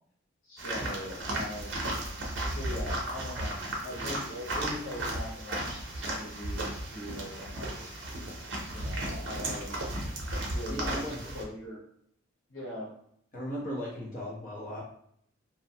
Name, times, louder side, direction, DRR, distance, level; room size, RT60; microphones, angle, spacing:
voice 1, 0.4-1.7 2.5-3.6 3.8-7.8 8.7-9.9 10.5-11.8 12.5-12.9, left 1 dB, 80° left, -5 dB, 0.9 m, -41 dB
sound 1, 0.6-11.4, right 1 dB, 60° right, 0.6 m, -35 dB
voice 2, 10.7-11.4 13.3-14.8, equal, 40° left, -3 dB, 0.8 m, -37 dB
2.6 x 2.1 x 2.7 m, 0.68 s
head